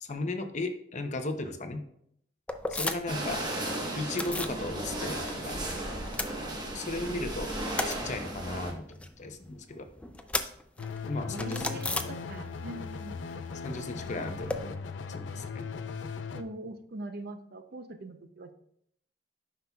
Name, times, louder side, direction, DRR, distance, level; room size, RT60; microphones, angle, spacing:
voice 1, 0.0-1.8 2.7-3.4 4.0-5.8 6.7-7.5 7.8-8.8 9.2-9.9 11.0-11.8 12.0-12.2 13.6-14.7 15.1-15.7, left 2 dB, 40° left, 7 dB, 0.6 m, -35 dB
sound 1, 2.5-3.3 3.5-4.6 4.9-5.7 6.0-7.0 7.3-12.7 13.0-14.6, left 2 dB, 5° left, 0.3 m, -36 dB
sound 2, 3.1-8.7, right 1 dB, 25° right, 1.1 m, -35 dB
sound 3, 10.8-16.4, left 5 dB, 85° left, 0.4 m, -38 dB
voice 2, 11.3-13.2 16.3-18.5, right 2 dB, 55° right, 8 dB, 0.6 m, -42 dB
9.3 x 5.8 x 2.3 m, 0.70 s
head